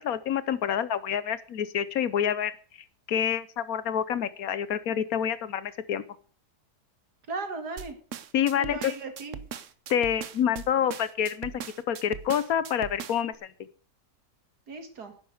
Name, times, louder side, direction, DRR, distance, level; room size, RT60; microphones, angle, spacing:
voice 1, 0.0-2.5 3.1-6.0 8.3-8.9 9.9-11.5 11.9-13.5, left 9 dB, 65° left, 16 dB, 1.2 m, -27 dB
voice 2, 7.3-8.0 8.5-9.4 14.7-15.1, right 3 dB, 80° right, 6 dB, 2.6 m, -36 dB
sound 1, 7.8-13.3, right 8 dB, 55° right, 1.1 m, -40 dB
11.0 x 9.8 x 6.6 m, 0.42 s
omnidirectional pair, 1.7 m